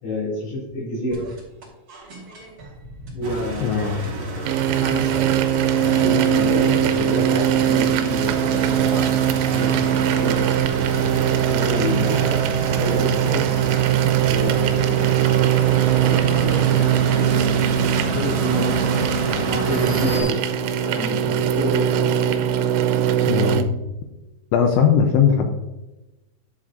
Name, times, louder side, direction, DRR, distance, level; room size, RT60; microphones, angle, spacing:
voice 1, 0.0-1.3 3.1-4.5 4.8-5.2 5.8-9.1 9.5-10.5 11.4-13.5 14.2-15.1 15.9-17.3 18.1-19.1 19.3-20.4 20.8-22.0, left 1 dB, 60° left, -6 dB, 4.2 m, -29 dB
sound 1, 1.1-16.6, right 1 dB, 35° right, 2.4 m, -41 dB
sound 2, 3.2-20.2, right 1 dB, 60° right, 1.6 m, -29 dB
voice 2, 3.6-4.0 23.3-23.6 24.5-25.5, left 7 dB, 85° left, 4 dB, 2.7 m, -18 dB
sound 3, 4.5-23.6, right 11 dB, 90° right, 3.3 m, -20 dB
11.0 x 7.3 x 2.6 m, 1.0 s
omnidirectional pair, 5.9 m